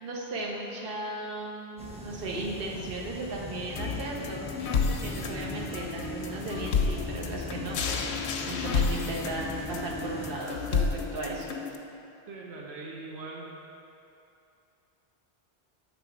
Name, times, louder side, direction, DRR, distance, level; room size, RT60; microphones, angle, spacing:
voice 1, 0.0-4.5 4.8-8.1 8.5-11.5, right 2 dB, 60° right, -2 dB, 1.0 m, -36 dB
Submarine internal, 1.8-10.3, left 1 dB, 10° right, 0.3 m, -41 dB
sound 1, 3.8-11.8, left 5 dB, 85° left, 0.8 m, -31 dB
voice 2, 12.3-13.5, right 3 dB, 85° right, -2 dB, 0.9 m, -41 dB
7.3 x 3.5 x 4.9 m, 2.7 s
omnidirectional pair, 1.1 m